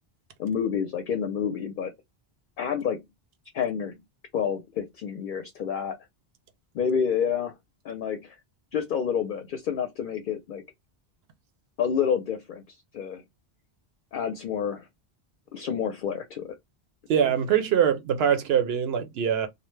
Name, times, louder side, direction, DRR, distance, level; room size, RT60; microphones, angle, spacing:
voice 1, 0.4-1.9 2.6-3.0 3.5-3.9 4.3-6.0 6.7-7.5 7.8-8.4 8.7-10.6 11.8-12.6 12.9-13.2 14.1-14.9 15.5-16.5, left 7 dB, 60° left, 0.6 m, -28 dB
voice 2, 17.1-19.5, right 8 dB, 75° right, 0.8 m, -23 dB
2.5 x 2.0 x 3.1 m
omnidirectional pair, 1.0 m